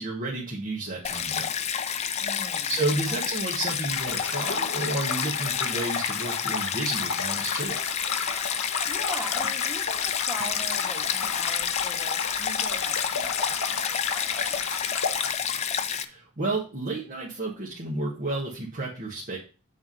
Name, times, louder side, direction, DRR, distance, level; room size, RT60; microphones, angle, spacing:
voice 1, 0.0-1.5 2.7-7.8 15.9-19.4, right 2 dB, 40° right, -4 dB, 1.4 m, -31 dB
Stream, 1.0-16.0, left 8 dB, 30° left, 0.4 m, -29 dB
voice 2, 2.2-3.2 8.5-14.6, right 1 dB, 10° right, 1 dB, 1.4 m, -41 dB
sound 1, 3.9-15.3, left 5 dB, 85° left, 1.0 m, -33 dB
7.6 x 3.6 x 5.4 m, 0.35 s
head